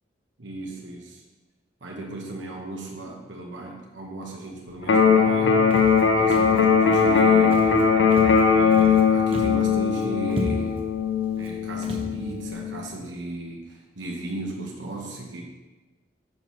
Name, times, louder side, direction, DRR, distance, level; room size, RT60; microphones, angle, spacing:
voice 1, 0.4-1.2 1.8-5.8 6.1-8.0 8.5-10.9 11.4-15.4, right 2 dB, 80° right, 0 dB, 1.0 m, -36 dB
Electric guitar, 4.8-12.8, left 6 dB, 85° left, 0.7 m, -20 dB
Walk footsteps, 5.7-6.0 6.3-6.6 6.9-7.2 7.5-7.8 8.1-9.0 9.3-9.7 9.9-10.0 10.3-10.8 11.4-11.5 11.8-12.1, equal, 30° right, 0.9 m, -34 dB
10.5 x 5.4 x 3.2 m, 1.2 s
head